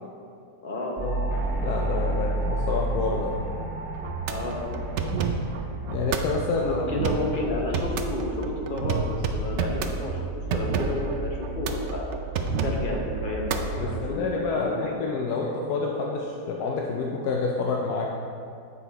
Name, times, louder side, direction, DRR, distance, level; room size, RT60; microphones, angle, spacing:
voice 1, 0.6-1.3 2.1-2.3 4.3-5.3 6.6-12.1 12.6-14.9, left 2 dB, 35° left, -1 dB, 1.0 m, -32 dB
sound 1, 1.0-6.0, right 1 dB, 5° right, 1.2 m, -30 dB
voice 2, 1.6-3.4 5.9-6.8 13.8-18.1, left 4 dB, 75° left, -1 dB, 1.2 m, -28 dB
sound 2, 3.9-14.1, right 4 dB, 70° right, 0.6 m, -30 dB
7.7 x 5.6 x 4.0 m, 2.4 s
omnidirectional pair, 1.7 m